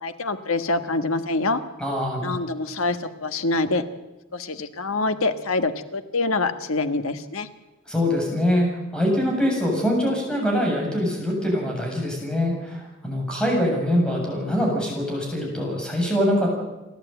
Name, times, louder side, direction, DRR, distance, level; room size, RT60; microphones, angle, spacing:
voice 1, 0.0-1.6 2.2-3.8 4.3-7.5, left 3 dB, 90° left, 9 dB, 1.4 m, -25 dB
voice 2, 1.8-2.3 7.9-8.7 8.9-16.5, equal, 5° left, 0 dB, 7.2 m, -23 dB
29.0 x 12.0 x 9.1 m, 1.1 s
head